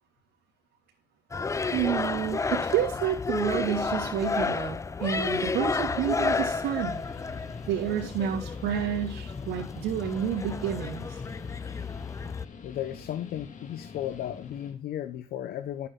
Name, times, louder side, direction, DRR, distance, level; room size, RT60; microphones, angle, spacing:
sound 1, 1.3-12.5, left 4 dB, 20° left, 0.5 m, -31 dB
voice 1, 1.7-7.0 7.7-11.2, right 10 dB, 80° right, -3 dB, 2.6 m, -30 dB
Guitar, 6.1-14.8, left 5 dB, 50° left, 3.0 m, -47 dB
voice 2, 12.6-15.9, left 11 dB, 65° left, 11 dB, 1.1 m, -35 dB
12.5 x 8.6 x 3.9 m, 0.29 s
cardioid pair, 110°, 17 cm